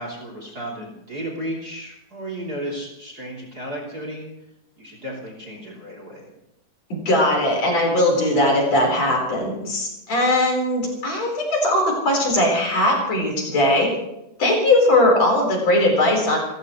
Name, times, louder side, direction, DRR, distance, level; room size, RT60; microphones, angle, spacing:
voice 1, 0.0-4.3 4.8-6.3, right 1 dB, 30° right, -1 dB, 3.7 m, -33 dB
voice 2, 6.9-13.9 14.4-16.4, left 1 dB, 50° left, 0 dB, 5.6 m, -19 dB
29.5 x 14.5 x 3.2 m, 0.87 s
omnidirectional pair, 3.8 m